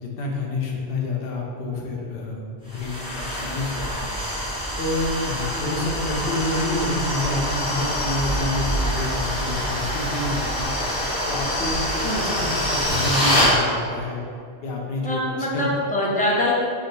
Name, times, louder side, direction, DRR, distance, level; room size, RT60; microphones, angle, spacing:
voice 1, 0.0-4.1 4.8-10.8 11.3-14.2 14.6-15.7, left 2 dB, 65° left, -1 dB, 0.9 m, -28 dB
sound 1, 2.7-13.5, equal, 5° right, 1.4 m, -25 dB
voice 2, 12.0-12.5 15.0-16.5, left 1 dB, 10° left, -4 dB, 0.4 m, -24 dB
3.7 x 2.8 x 3.9 m, 2.3 s
omnidirectional pair, 1.1 m